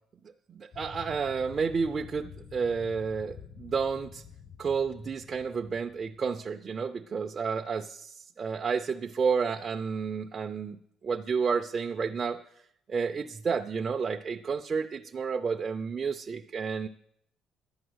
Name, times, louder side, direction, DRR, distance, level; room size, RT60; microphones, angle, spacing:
voice 1, 0.5-4.2 4.6-10.8 11.0-12.4 12.9-16.9, right 5 dB, 30° right, 5 dB, 0.5 m, -31 dB
sound 1, 0.7-6.5, left 7 dB, 35° left, 0.8 m, -48 dB
11.0 x 8.6 x 7.9 m, 0.72 s
cardioid pair, 145°, 0 cm